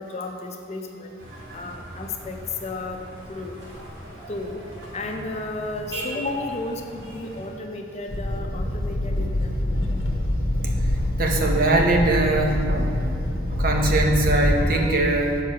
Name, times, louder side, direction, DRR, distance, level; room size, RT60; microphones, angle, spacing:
voice 1, 0.0-1.2 1.5-3.0 3.3-3.6 4.3-4.6 4.9-10.0, left 2 dB, 35° left, 3 dB, 0.5 m, -33 dB
sound 1, 1.2-7.5, right 1 dB, 65° right, 1.4 m, -39 dB
sound 2, 8.1-14.7, left 1 dB, 80° left, 0.8 m, -25 dB
voice 2, 10.9-13.1 13.5-15.4, right 2 dB, 50° right, 1 dB, 0.7 m, -22 dB
6.5 x 4.6 x 4.8 m, 2.7 s
head